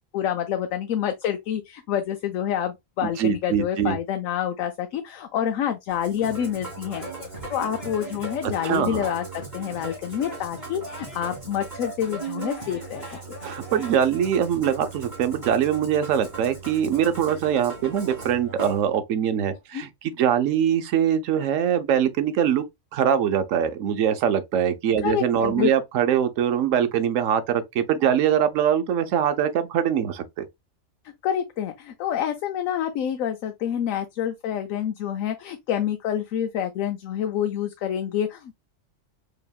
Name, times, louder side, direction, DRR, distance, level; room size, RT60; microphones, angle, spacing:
voice 1, 0.1-7.0 7.5-13.0 19.7-19.8 25.0-25.7 31.2-38.5, left 9 dB, 90° left, 1.0 m, -27 dB
voice 2, 3.0-4.0 8.6-9.1 13.4-22.6 22.9-30.4, right 9 dB, 80° right, 1.0 m, -23 dB
Musical instrument, 5.9-18.8, right 4 dB, 15° right, 2.2 m, -38 dB
Male speech man speaking / Yell / Laughter, 6.9-9.0 9.7-11.4 12.1-13.9, left 3 dB, 30° left, 1.2 m, -42 dB
4.8 x 2.9 x 2.3 m
omnidirectional pair, 1.3 m